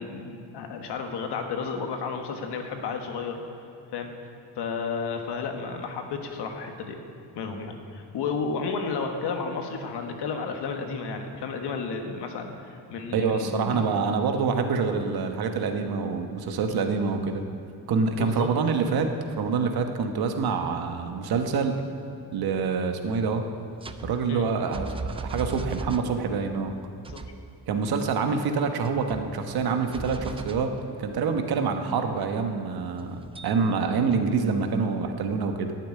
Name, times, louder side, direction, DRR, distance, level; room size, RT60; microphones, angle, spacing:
voice 1, 0.0-3.4 3.9-4.1 4.5-7.0 7.3-13.9 18.2-18.5 24.3-24.4 27.1-27.2, left 5 dB, 85° left, 4 dB, 1.5 m, -32 dB
voice 2, 13.1-17.4 17.9-21.8 22.3-23.5 24.0-26.7 27.7-30.7 31.0-35.8, right 5 dB, 65° right, 5 dB, 1.2 m, -26 dB
sound 1, 23.8-26.6 26.9-27.6 28.2-28.3 28.8-29.7 29.9-31.1 32.4-32.5 33.0-33.8, right 3 dB, 15° right, 0.3 m, -37 dB
12.0 x 7.0 x 9.4 m, 2.7 s
cardioid pair, 165°, 39 cm